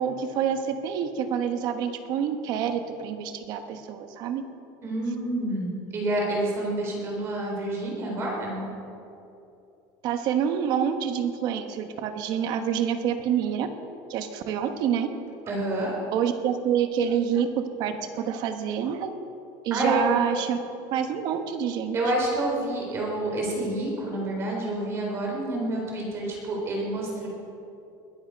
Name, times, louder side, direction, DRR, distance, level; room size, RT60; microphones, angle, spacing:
voice 1, 0.0-4.4 10.0-13.7 14.1-15.1 16.1-19.1 19.6-20.6 20.9-22.0, right 8 dB, 40° right, 8 dB, 1.2 m, -27 dB
voice 2, 4.8-8.7 15.5-15.9 19.7-20.1 21.9-27.3, right 1 dB, 25° right, -1 dB, 3.7 m, -28 dB
21.5 x 11.5 x 5.2 m, 2.7 s
cardioid pair, 175°, 11 cm